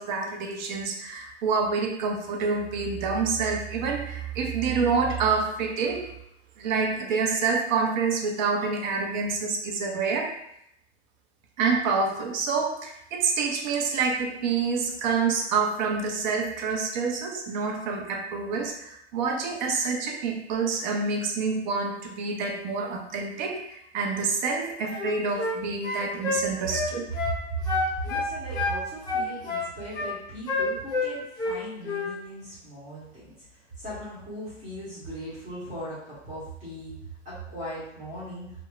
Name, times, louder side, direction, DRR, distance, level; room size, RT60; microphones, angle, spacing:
voice 1, 0.0-6.1 6.6-10.3 11.6-27.0, right 4 dB, 40° right, 2 dB, 0.4 m, -27 dB
sound 1, 24.9-25.6 25.8-27.4 27.7-28.8 29.1-30.1 30.5-31.6 31.8-32.1, left 3 dB, 10° left, 0.5 m, -28 dB
voice 2, 28.0-33.3 33.8-36.9 37.2-38.5, right 1 dB, 20° right, -10 dB, 1.1 m, -38 dB
3.0 x 2.0 x 2.2 m, 0.77 s
hypercardioid pair, 110°, 36 cm